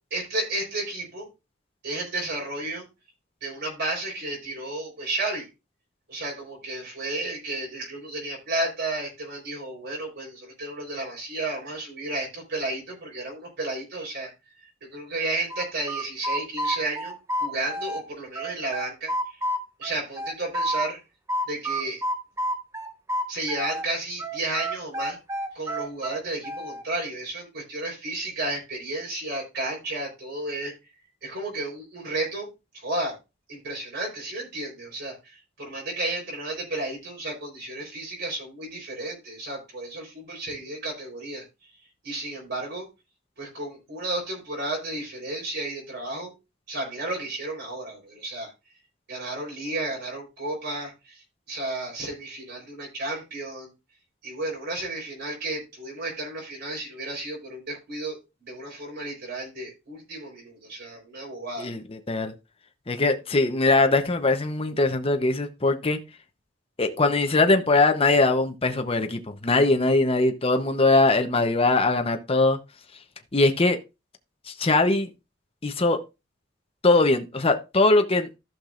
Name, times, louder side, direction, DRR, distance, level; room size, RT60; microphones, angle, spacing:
voice 1, 0.1-1.3 1.8-2.8 3.4-5.5 6.1-14.3 14.8-17.1 17.4-19.4 19.8-21.0 21.5-22.0 23.3-25.2 25.5-30.7 31.2-33.2 33.5-41.4 42.0-42.8 43.4-46.3 46.7-48.5 49.1-53.7 54.2-61.7, right 2 dB, 60° right, 4.2 m, -32 dB
sound 1, 15.5-18.0 18.3-20.9 21.3-23.9 24.2-26.8, equal, 15° right, 1.1 m, -29 dB
voice 2, 61.6-62.3 62.9-66.0 66.8-72.6 73.3-73.8 74.5-75.1 75.6-76.0 76.8-78.3, left 2 dB, 30° left, 0.9 m, -21 dB
15.0 x 5.9 x 2.5 m
head